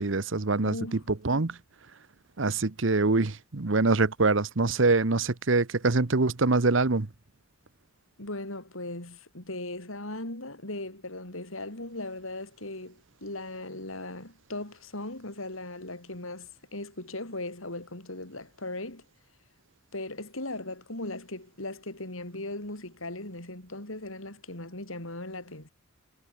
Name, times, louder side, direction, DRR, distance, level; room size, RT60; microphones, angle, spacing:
voice 1, 0.0-0.8 1.2-1.6 2.4-7.1, right 3 dB, 60° right, 1.0 m, -24 dB
voice 2, 0.6-1.1 8.2-19.0 19.9-25.7, left 2 dB, 70° left, 6.2 m, -38 dB
head